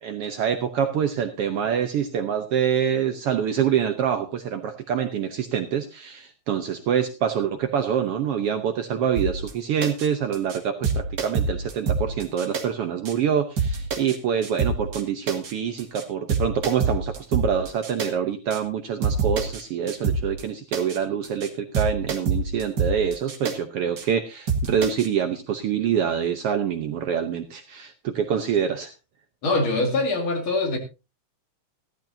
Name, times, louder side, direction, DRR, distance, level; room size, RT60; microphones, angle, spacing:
voice 1, 0.0-28.9, right 8 dB, 65° right, 8 dB, 1.6 m, -26 dB
sound 1, 9.2-9.5 9.8-10.1 10.3-10.6 10.8-12.6 13.0-13.1 13.6-14.2 14.4-15.0 15.3-15.5 15.8-16.0 16.3-18.1 18.5-18.6 19.0-19.6 19.9-20.4 20.7-21.0 21.2-21.5 21.7-23.5 24.0-24.1 24.5-25.1, right 4 dB, 40° right, 1.9 m, -26 dB
voice 2, 29.4-30.8, left 2 dB, 45° left, 4 dB, 2.7 m, -23 dB
14.5 x 13.5 x 2.7 m, 0.28 s
omnidirectional pair, 3.3 m